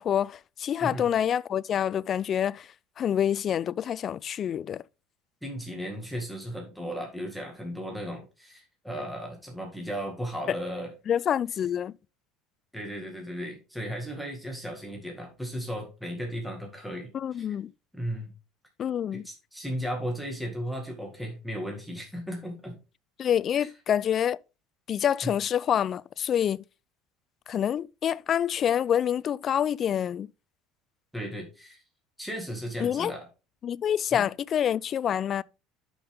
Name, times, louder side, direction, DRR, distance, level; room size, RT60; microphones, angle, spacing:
voice 1, 0.0-2.7 3.0-4.8 10.5-10.6 11.1-11.9 17.1-17.7 18.8-19.2 23.2-24.4 24.9-26.6 27.5-30.3 32.8-33.1 33.6-35.4, left 9 dB, 35° left, 0.3 m, -27 dB
voice 2, 5.4-10.9 12.7-17.6 17.9-18.3 19.1-22.8 23.6-23.7 25.2-25.3 31.1-31.8 32.2-33.3 34.1-34.3, equal, ahead, 2.0 m, -35 dB
11.0 x 5.5 x 3.6 m
cardioid pair, 145°, 0 cm